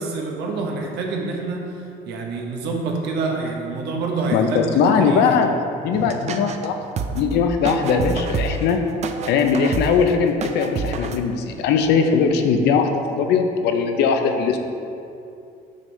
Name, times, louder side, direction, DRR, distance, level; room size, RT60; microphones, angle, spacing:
voice 1, 0.0-5.2, right 3 dB, 85° right, 0 dB, 1.0 m, -27 dB
voice 2, 4.3-6.8 7.1-8.8 9.2-14.6, left 5 dB, 80° left, 6 dB, 0.6 m, -20 dB
sound 1, 5.9-6.7 7.0-11.2, right 4 dB, 40° right, 0.4 m, -28 dB
6.3 x 5.4 x 3.2 m, 2.6 s
cardioid pair, 110°, 17 cm